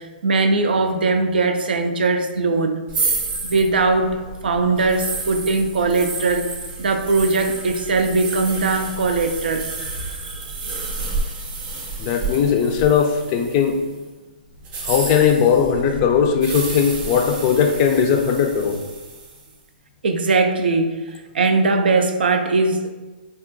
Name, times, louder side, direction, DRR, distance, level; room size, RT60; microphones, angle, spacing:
voice 1, 0.0-2.8 3.4-6.4 6.8-9.7 10.0-10.9 12.1-12.2 20.0-21.0 21.3-22.9, right 3 dB, 75° right, 6 dB, 0.4 m, -20 dB
sound 1, 2.9-13.8 14.6-19.4, right 3 dB, 25° right, 0.6 m, -30 dB
voice 2, 12.0-13.8 14.9-18.8, left 7 dB, 35° left, 4 dB, 0.4 m, -18 dB
3.6 x 2.3 x 2.5 m, 1.2 s
hypercardioid pair, 135°, 5 cm